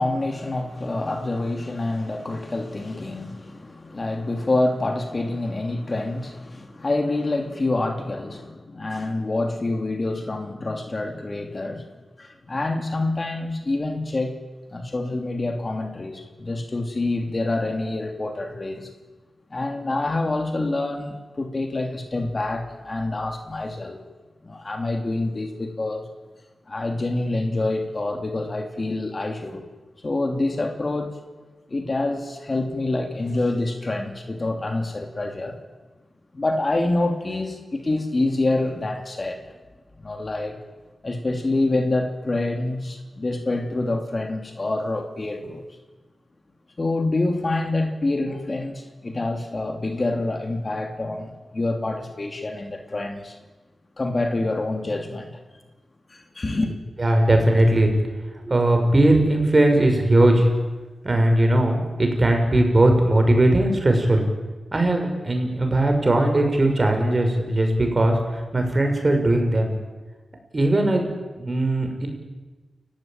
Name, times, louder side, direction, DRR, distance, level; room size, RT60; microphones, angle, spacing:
voice 1, 0.0-11.8 12.2-14.3 14.7-18.9 19.5-24.0 24.4-26.1 26.7-29.6 30.0-31.2 31.7-35.6 36.3-39.5 40.0-40.6 41.0-45.6 46.8-53.4 54.0-55.4 56.1-56.7, left 2 dB, 35° left, 5 dB, 2.8 m, -26 dB
voice 2, 57.0-57.9 58.4-60.5 61.0-64.2 64.7-69.7 70.5-72.1, right 1 dB, 30° right, 4 dB, 6.2 m, -19 dB
30.0 x 15.5 x 9.0 m, 1.2 s
wide cardioid pair, 90°, 0 cm